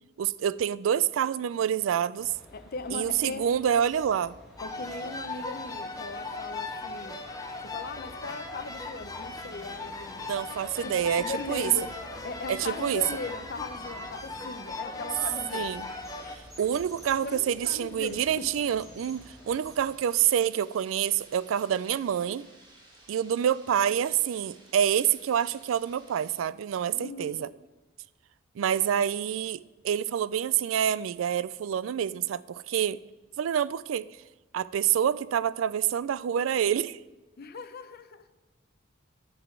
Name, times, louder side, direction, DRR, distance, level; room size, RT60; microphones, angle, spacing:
voice 1, 0.2-2.3 2.9-4.3 10.2-11.7 12.5-13.0 15.5-15.8 16.6-22.5 23.1-27.5 28.6-33.0 33.4-34.1 34.5-37.0, right 9 dB, 80° right, 0.3 m, -27 dB
sound 1, 2.1-20.0, equal, ahead, 1.8 m, -51 dB
voice 2, 2.5-3.5 4.6-7.2 7.6-10.2 10.8-15.7 17.2-18.5 26.9-27.5 37.4-38.3, left 3 dB, 50° left, 0.6 m, -39 dB
sound 2, 4.6-16.4, left 3 dB, 20° left, 0.8 m, -38 dB
sound 3, 8.0-26.4, right 1 dB, 25° right, 2.1 m, -59 dB
11.0 x 4.1 x 7.6 m
head